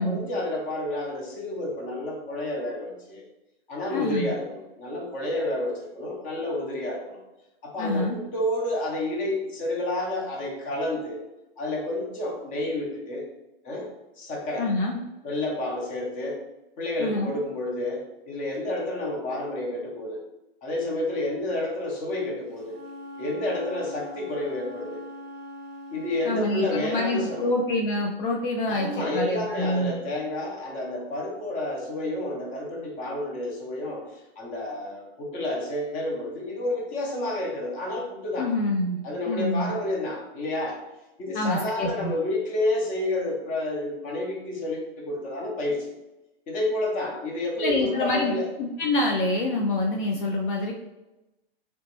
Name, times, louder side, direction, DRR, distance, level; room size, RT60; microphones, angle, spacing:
voice 1, 0.0-3.3 3.7-7.2 7.6-11.2 11.6-13.3 13.6-14.7 15.2-16.4 16.8-20.2 20.6-22.8 23.2-25.0 25.9-27.5 28.6-34.0 34.4-38.5 39.0-40.8 41.2-45.9 46.5-48.4, left 1 dB, 25° left, -1 dB, 0.8 m, -30 dB
voice 2, 3.9-4.3 7.8-8.2 14.6-15.0 17.0-17.4 26.2-30.0 38.4-39.0 39.3-39.7 41.3-42.1 47.6-50.7, left 2 dB, 55° left, 1 dB, 0.5 m, -26 dB
Wind instrument woodwind instrument, 22.5-27.6, left 1 dB, 25° right, 0.6 m, -42 dB
3.1 x 2.9 x 3.0 m, 0.97 s
hypercardioid pair, 130°, 30 cm